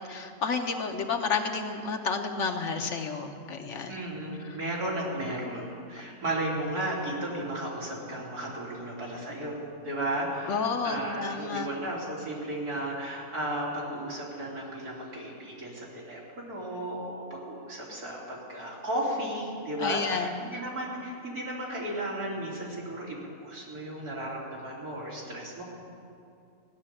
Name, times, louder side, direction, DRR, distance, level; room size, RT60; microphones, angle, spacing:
voice 1, 0.1-4.0 10.5-11.7 19.8-20.3, left 5 dB, 60° left, 5 dB, 1.1 m, -31 dB
voice 2, 3.9-16.2 16.5-25.6, right 1 dB, 90° right, -5 dB, 3.4 m, -34 dB
15.5 x 6.7 x 9.7 m, 2.4 s
omnidirectional pair, 1.6 m